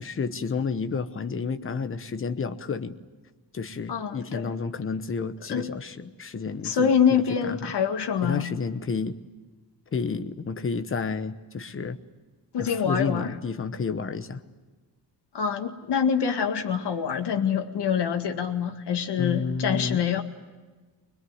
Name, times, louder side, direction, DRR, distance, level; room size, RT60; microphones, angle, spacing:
voice 1, 0.0-3.0 3.5-6.9 7.4-7.7 8.2-9.2 9.9-12.0 12.6-14.4 19.2-20.0, left 5 dB, 30° left, 9 dB, 1.0 m, -30 dB
voice 2, 3.9-4.5 5.5-5.7 6.6-8.4 12.5-13.3 15.3-20.2, left 7 dB, 75° left, 5 dB, 1.9 m, -25 dB
22.5 x 22.0 x 9.5 m, 1.3 s
wide cardioid pair, 175°, 41 cm